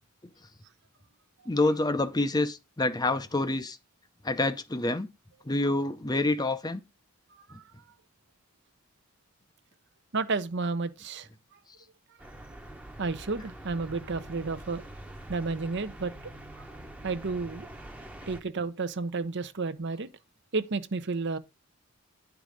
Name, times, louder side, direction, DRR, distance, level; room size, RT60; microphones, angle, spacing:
voice 1, 1.5-3.8 4.2-5.1 5.4-6.8 7.5-7.6, left 2 dB, 20° left, 0.6 m, -27 dB
voice 2, 7.3-7.6 10.1-11.3 13.0-14.8 15.3-16.1 16.6-16.7 17.0-17.7 18.3-20.1 20.5-21.4, right 4 dB, 50° right, 0.7 m, -31 dB
sound 1, 12.2-18.4, right 1 dB, 5° right, 0.9 m, -45 dB
10.5 x 4.8 x 5.1 m
head